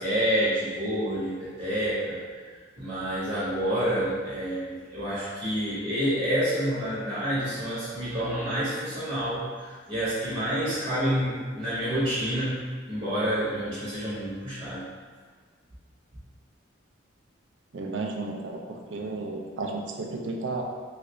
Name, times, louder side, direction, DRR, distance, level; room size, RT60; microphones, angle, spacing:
voice 1, 0.0-2.2 2.8-12.6 12.9-14.8, equal, 30° right, -11 dB, 0.8 m, -28 dB
voice 2, 17.7-20.6, right 3 dB, 65° right, 1 dB, 0.4 m, -33 dB
3.2 x 2.5 x 3.0 m, 1.5 s
head